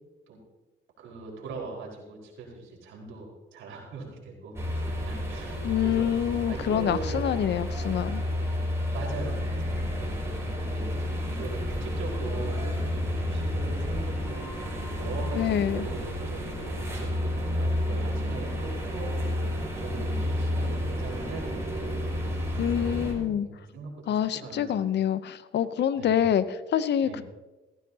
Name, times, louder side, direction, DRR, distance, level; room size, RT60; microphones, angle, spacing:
voice 1, 1.0-4.6 5.0-7.3 8.9-9.9 10.5-14.5 14.9-16.5 16.9-19.1 19.8-21.9 22.4-24.8 25.9-26.2 27.0-27.2, right 4 dB, 80° right, -3 dB, 4.8 m, -41 dB
sound 1, 4.5-23.1, left 1 dB, 15° right, 5.5 m, -30 dB
voice 2, 5.6-8.2 15.3-15.9 22.6-23.5 24.1-27.2, left 9 dB, 60° left, 14 dB, 0.7 m, -26 dB
17.0 x 15.0 x 2.8 m, 1.2 s
cardioid pair, 90°, 20 cm